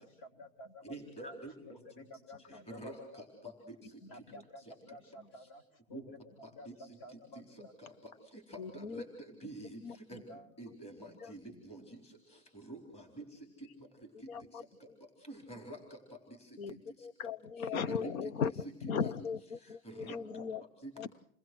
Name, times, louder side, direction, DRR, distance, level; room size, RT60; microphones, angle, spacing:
voice 1, 0.0-1.4 1.6-3.2 4.1-7.7 10.3-10.5, left 1 dB, 40° left, 6 dB, 3.7 m, -52 dB
voice 2, 0.8-2.1 2.4-4.2 4.6-4.7 5.4-5.5 5.9-6.0 6.4-17.1 17.6-18.1 19.0-19.1 19.6-20.5 20.8-20.9, right 1 dB, 15° left, 3 dB, 4.0 m, -49 dB
voice 3, 8.6-9.0 9.8-10.2 11.2-11.3 14.3-14.9 16.6-20.6 21.0-21.1, left 6 dB, 75° left, 17 dB, 1.1 m, -38 dB
29.0 x 21.0 x 6.2 m, 0.65 s
supercardioid pair, 160°, 42 cm